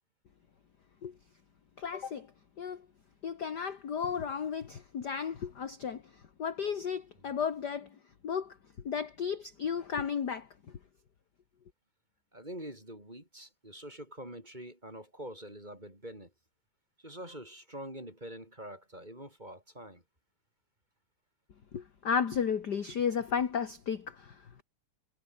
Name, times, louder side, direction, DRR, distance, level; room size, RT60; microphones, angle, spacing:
voice 1, 1.8-2.3 2.6-2.8 3.2-6.0 6.4-7.9 8.2-8.5 8.8-10.5 21.7-24.6, left 7 dB, 40° left, 1.7 m, -33 dB
voice 2, 12.3-16.3 17.0-20.0, right 1 dB, 15° right, 8.0 m, -45 dB
omnidirectional pair, 3.5 m